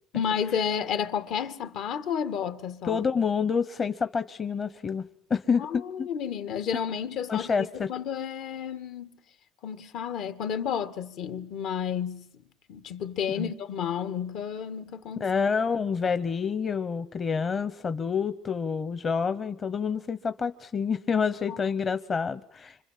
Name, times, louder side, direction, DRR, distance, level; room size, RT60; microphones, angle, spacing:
voice 1, 0.1-3.0 5.6-9.1 9.6-12.2 12.7-15.3 21.5-21.6, left 8 dB, 70° left, 2.2 m, -31 dB
voice 2, 2.8-6.1 7.3-7.9 13.3-13.5 15.2-22.8, left 6 dB, 35° left, 1.1 m, -28 dB
26.5 x 25.5 x 7.7 m
cardioid pair, 110°, 0 cm